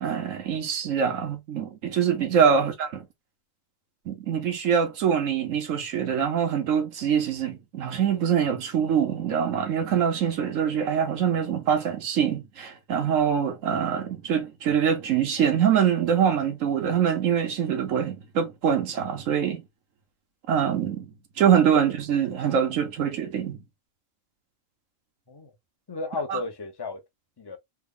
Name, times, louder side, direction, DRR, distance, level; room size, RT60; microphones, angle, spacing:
voice 1, 0.0-3.0 4.1-19.6 20.5-21.1 21.4-23.6 26.3-26.4, right 8 dB, 80° right, 1.2 m, -24 dB
voice 2, 25.9-27.0 27.4-27.6, left 3 dB, 25° left, 0.6 m, -34 dB
3.4 x 2.0 x 3.6 m
omnidirectional pair, 1.3 m